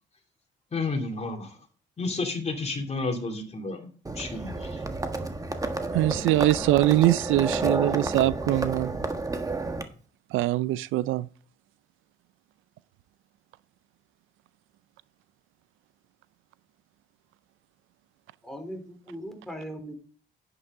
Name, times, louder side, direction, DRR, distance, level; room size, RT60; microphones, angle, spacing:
voice 1, 0.7-1.6 2.0-3.9 4.2-4.8, left 3 dB, 35° left, 2.8 m, -31 dB
Livestock farm animals working animals, 4.0-9.8, right 2 dB, 15° right, 1.4 m, -31 dB
voice 2, 5.9-8.9 10.3-11.3, right 15 dB, 90° right, 0.4 m, -23 dB
voice 3, 18.4-19.9, equal, ahead, 3.2 m, -39 dB
10.5 x 8.7 x 3.6 m
cardioid pair, 90°, 20 cm